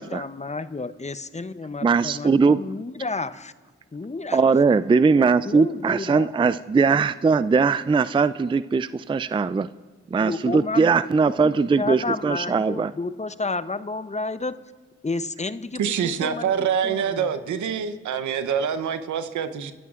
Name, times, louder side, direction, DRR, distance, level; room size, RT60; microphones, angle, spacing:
voice 1, 0.0-3.5 3.9-4.5 5.2-6.3 10.2-11.1 11.4-14.6 15.0-15.9 16.2-16.5 16.8-17.3, left 3 dB, 25° left, 13 dB, 0.7 m, -31 dB
voice 2, 1.8-2.6 4.3-9.7 10.1-12.9, right 4 dB, 20° right, 15 dB, 0.4 m, -20 dB
voice 3, 15.8-19.7, right 7 dB, 85° right, 10 dB, 0.8 m, -25 dB
24.0 x 13.0 x 2.5 m, 1.4 s
supercardioid pair, 40°, 29 cm